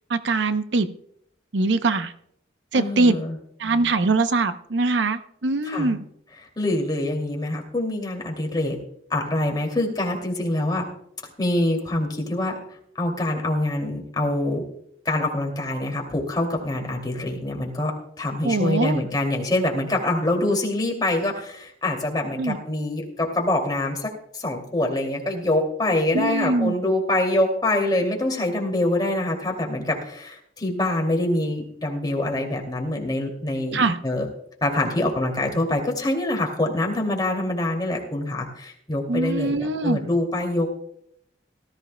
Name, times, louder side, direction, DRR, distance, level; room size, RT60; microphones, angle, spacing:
voice 1, 0.1-0.9 1.5-2.1 2.7-3.2 3.6-6.0 18.4-19.0 22.4-22.6 26.1-26.7 33.7-34.0 39.1-40.0, right 3 dB, 75° right, 10 dB, 0.7 m, -22 dB
voice 2, 2.7-3.4 5.6-5.9 6.6-8.8 9.1-10.8 11.4-12.6 13.0-14.6 15.0-34.3 34.6-40.7, left 1 dB, 20° left, 0 dB, 2.5 m, -25 dB
18.0 x 14.0 x 2.2 m, 0.70 s
head